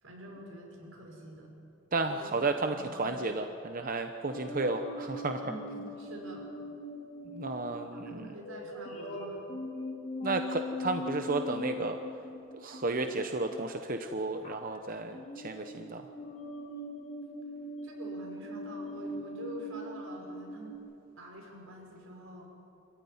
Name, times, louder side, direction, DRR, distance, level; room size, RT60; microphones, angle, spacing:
voice 1, 0.0-1.5 2.1-2.3 2.6-3.4 5.4-6.5 7.9-9.5 17.8-20.7 21.2-22.5, equal, 85° right, 0 dB, 5.8 m, -46 dB
voice 2, 1.9-5.4 7.3-8.3 10.2-12.0 12.6-16.0, right 3 dB, 45° right, 6 dB, 0.9 m, -33 dB
sound 1, 4.3-13.7 14.4-14.8 15.1-20.8, left 1 dB, 40° left, 4.6 m, -41 dB
26.0 x 15.0 x 9.6 m, 2.8 s
head